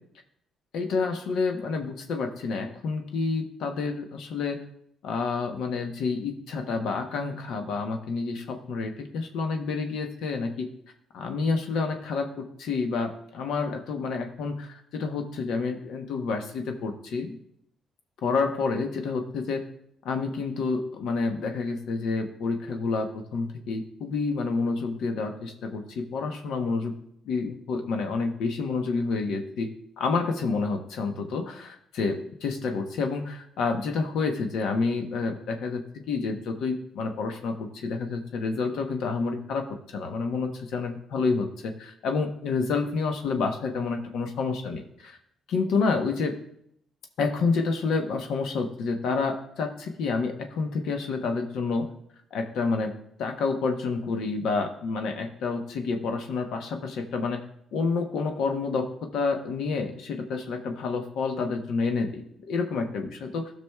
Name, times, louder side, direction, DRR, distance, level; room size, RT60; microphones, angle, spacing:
voice 1, 0.7-4.6 5.0-10.7 11.1-17.4 18.2-19.6 20.0-26.9 27.2-29.7 30.0-45.2 45.5-46.4 47.2-51.9 52.3-52.9 53.2-57.4 57.7-63.5, left 4 dB, 80° left, 5 dB, 0.9 m, -29 dB
17.5 x 6.0 x 2.3 m, 0.73 s
cardioid pair, 90°, 0 cm